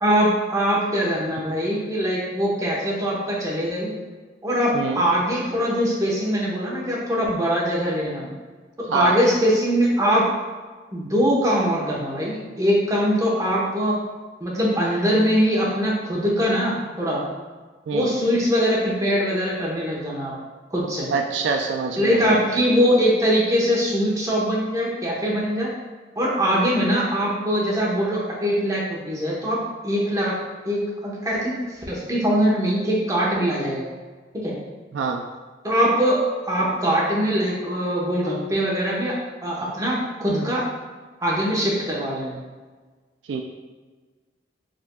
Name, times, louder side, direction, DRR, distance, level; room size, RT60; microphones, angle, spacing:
voice 1, 0.0-3.9 4.4-8.3 8.8-10.2 10.9-14.0 14.4-17.2 17.9-20.3 20.7-21.1 22.0-25.7 26.1-30.4 30.6-31.5 31.9-33.8 34.4-34.5 35.6-36.2 36.5-39.1 39.4-40.6 41.2-42.4, equal, 20° right, -6 dB, 1.0 m, -22 dB
voice 2, 21.1-22.4 34.9-35.3 43.3-43.4, right 5 dB, 80° right, 4 dB, 0.3 m, -25 dB
4.9 x 3.4 x 2.2 m, 1.4 s
head